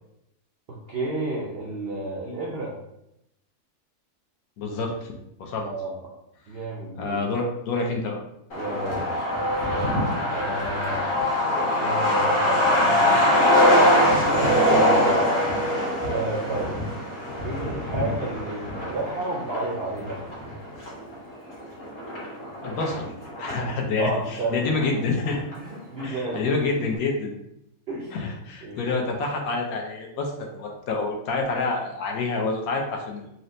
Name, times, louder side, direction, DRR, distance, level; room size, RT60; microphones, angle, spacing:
voice 1, 0.7-2.7 5.6-6.1 6.5-7.2 8.5-9.2 9.7-10.0 10.3-11.1 11.7-13.3 14.6-15.0 16.1-16.7 17.4-20.2 24.0-24.8 25.6-26.8 27.9-28.1 28.6-29.1, right 2 dB, 80° right, -3 dB, 0.5 m, -31 dB
voice 2, 4.6-5.1 5.4-5.7 6.9-8.2 22.6-23.1 23.4-25.4 26.0-27.3 28.1-33.3, left 3 dB, 70° left, 1 dB, 1.0 m, -27 dB
Truck, 8.5-23.7 24.0-24.1 24.4-25.3 25.5-25.6 26.0-26.4, left 1 dB, 55° left, 1.4 m, -23 dB
4.2 x 2.0 x 2.5 m, 0.81 s
omnidirectional pair, 1.7 m